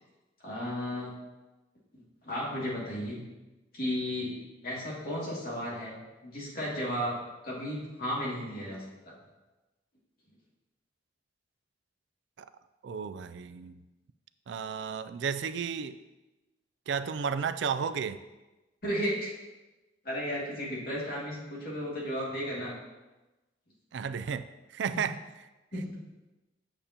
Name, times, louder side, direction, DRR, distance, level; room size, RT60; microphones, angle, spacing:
voice 1, 0.4-1.1 1.9-3.2 3.7-4.3 4.6-6.0 6.2-7.2 7.4-9.1 18.8-19.3 20.0-22.8 25.7-25.9, equal, 50° left, -5 dB, 2.3 m, -34 dB
voice 2, 12.8-13.7 14.5-16.0 16.9-18.2 23.9-24.4 24.7-25.2, right 6 dB, 70° right, 12 dB, 0.3 m, -33 dB
8.8 x 6.8 x 2.9 m, 1.1 s
head